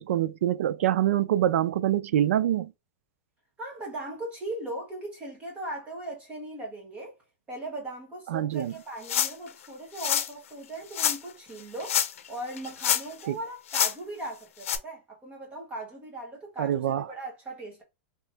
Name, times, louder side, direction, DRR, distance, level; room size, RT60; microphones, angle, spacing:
voice 1, 0.0-2.7 8.3-8.7 13.3-13.4 16.6-17.1, right 11 dB, 80° right, 0.4 m, -25 dB
voice 2, 3.6-7.1 7.5-17.8, right 1 dB, 20° right, 1.2 m, -38 dB
sound 1, 9.0-9.5 10.0-10.3 10.9-11.2 11.8-12.3 12.6-13.2 13.7-13.9 14.6-14.8, left 9 dB, 90° left, 0.6 m, -26 dB
2.9 x 2.8 x 3.4 m
supercardioid pair, 150°, 7 cm